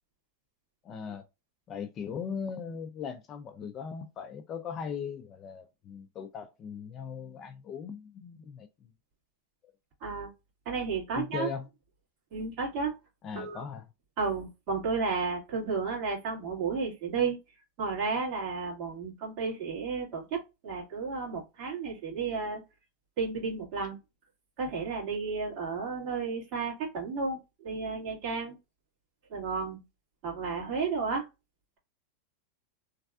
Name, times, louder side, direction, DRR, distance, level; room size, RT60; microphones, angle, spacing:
voice 1, 0.8-1.2 1.7-8.7 11.2-11.7 13.2-13.9, left 6 dB, 25° left, 0.3 m, -39 dB
voice 2, 10.0-10.3 10.7-11.5 12.3-12.9 13.3-13.6 14.2-17.4 17.8-22.6 23.2-24.0 24.6-28.6 29.3-29.8 30.2-31.3, right 4 dB, 40° right, 1.8 m, -32 dB
3.2 x 2.3 x 2.4 m
supercardioid pair, 155°, 0 cm